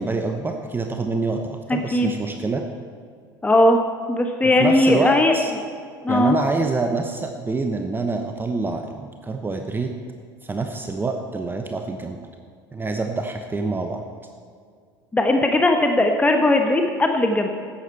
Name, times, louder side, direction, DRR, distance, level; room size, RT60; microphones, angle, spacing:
voice 1, 0.0-2.7 4.6-5.5 6.1-9.9 10.4-12.2 12.7-14.0, right 3 dB, 15° right, 4 dB, 0.9 m, -26 dB
voice 2, 1.9-2.2 3.4-3.8 4.1-5.3 6.0-6.3 15.1-17.5, left 1 dB, 10° left, 4 dB, 1.0 m, -18 dB
14.5 x 9.8 x 4.4 m, 2.1 s
figure-of-eight pair, 70°, 12 cm